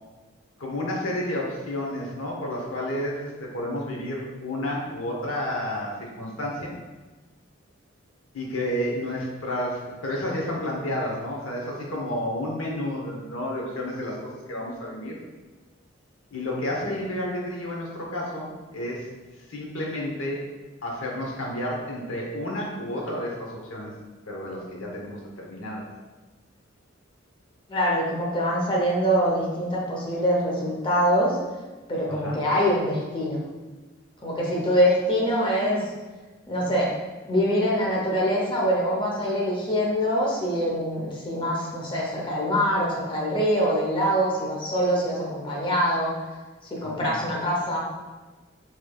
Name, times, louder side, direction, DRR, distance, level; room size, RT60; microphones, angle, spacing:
voice 1, 0.6-6.8 8.3-15.2 16.3-19.1 19.5-20.4 20.8-23.9 24.3-25.8 32.1-32.4 46.8-47.2, left 1 dB, 85° left, -2 dB, 0.9 m, -31 dB
voice 2, 27.7-31.4 31.9-33.4 34.2-35.8 36.5-36.9 37.3-46.1 46.8-47.8, equal, 25° left, -4 dB, 0.8 m, -24 dB
4.7 x 3.0 x 2.3 m, 1.3 s
head